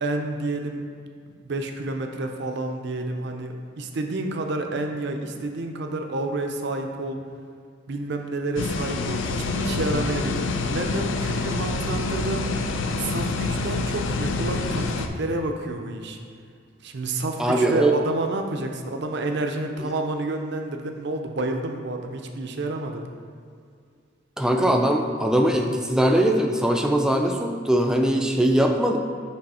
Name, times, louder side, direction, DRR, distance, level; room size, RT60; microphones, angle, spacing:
voice 1, 0.0-0.8 1.3-7.2 7.9-12.4 13.0-16.2 16.8-23.1, right 2 dB, 60° right, 4 dB, 0.5 m, -29 dB
sound 1, 8.6-15.1, left 3 dB, 75° left, 0.4 m, -27 dB
voice 2, 17.4-18.0 24.4-29.0, right 1 dB, 5° right, 3 dB, 0.4 m, -21 dB
7.7 x 3.3 x 4.2 m, 2.2 s
head